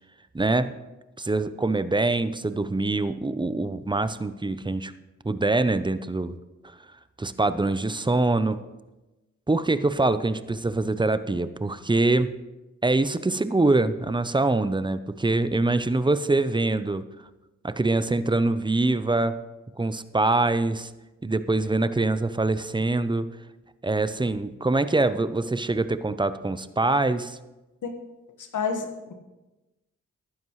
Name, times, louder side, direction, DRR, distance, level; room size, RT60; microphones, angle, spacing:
voice 1, 0.3-0.7 1.2-4.9 5.2-6.3 6.6-6.7 7.2-8.6 9.5-12.3 12.8-17.0 17.6-19.4 19.8-20.9 21.2-23.3 23.8-27.4, right 2 dB, 15° right, 13 dB, 0.6 m, -24 dB
voice 2, 28.4-29.1, left 5 dB, 70° left, 6 dB, 1.6 m, -29 dB
14.5 x 11.5 x 3.2 m, 1.1 s
cardioid pair, 60°, 31 cm